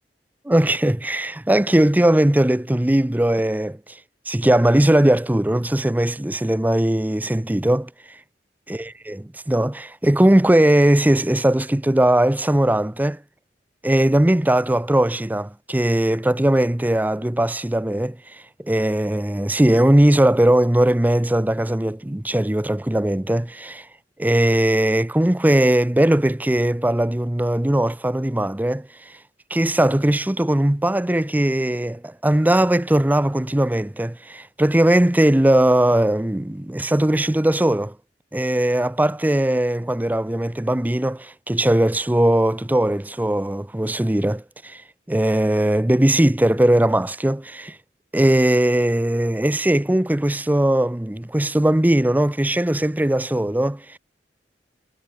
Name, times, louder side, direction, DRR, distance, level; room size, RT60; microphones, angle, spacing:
voice 1, 0.5-4.0 4.3-7.9 8.7-13.2 13.8-23.9 24.2-29.1 29.5-37.9 38.3-44.8 45.1-47.8 48.1-54.0, right 1 dB, 10° right, 0.5 m, -19 dB
head